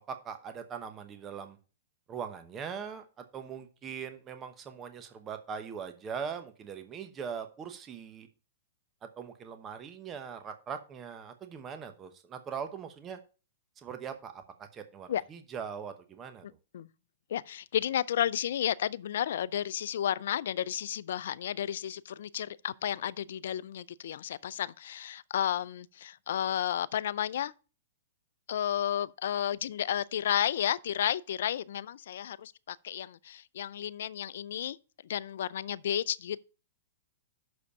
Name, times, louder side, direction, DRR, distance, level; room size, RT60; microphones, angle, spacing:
voice 1, 0.1-1.6 2.1-8.3 9.2-13.2 13.8-16.5, right 7 dB, 25° right, 0.9 m, -41 dB
voice 2, 16.4-16.9 17.3-27.5 28.5-34.8 35.0-36.4, left 10 dB, 70° left, 0.4 m, -32 dB
6.4 x 5.1 x 6.9 m
hypercardioid pair, 130°, 0 cm